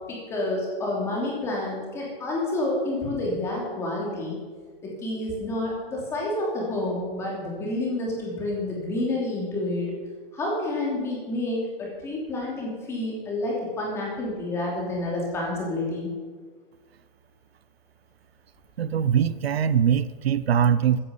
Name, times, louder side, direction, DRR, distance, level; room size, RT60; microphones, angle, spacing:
voice 1, 0.1-4.4 4.8-9.9 10.3-16.1, left 2 dB, 10° left, -3 dB, 2.9 m, -29 dB
voice 2, 18.8-21.0, right 8 dB, 85° right, 16 dB, 0.8 m, -22 dB
15.0 x 10.0 x 7.0 m, 1.5 s
hypercardioid pair, 175°, 30 cm